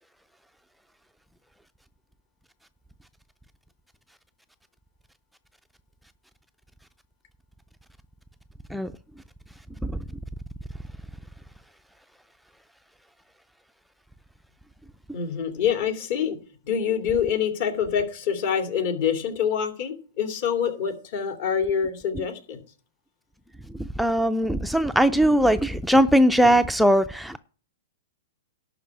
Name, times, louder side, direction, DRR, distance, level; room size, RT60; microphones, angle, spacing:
voice 1, 15.1-16.4 16.6-22.6, left 7 dB, 55° left, 2.5 m, -26 dB
voice 2, 23.8-27.4, equal, ahead, 0.4 m, -20 dB
11.5 x 4.7 x 8.5 m
hypercardioid pair, 135°, 0 cm